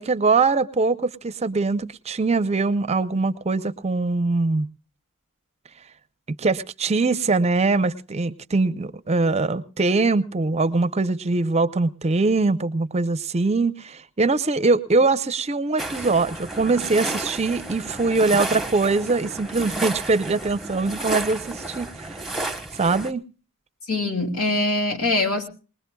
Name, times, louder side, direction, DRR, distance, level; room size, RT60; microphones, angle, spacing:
voice 1, 0.0-4.7 6.4-22.2 22.8-23.2, right 3 dB, 30° right, 12 dB, 0.6 m, -22 dB
sound 1, 15.8-23.1, right 2 dB, ahead, 1.1 m, -32 dB
voice 2, 23.9-25.5, left 2 dB, 65° left, 4 dB, 2.8 m, -23 dB
20.5 x 20.5 x 2.3 m, 0.36 s
head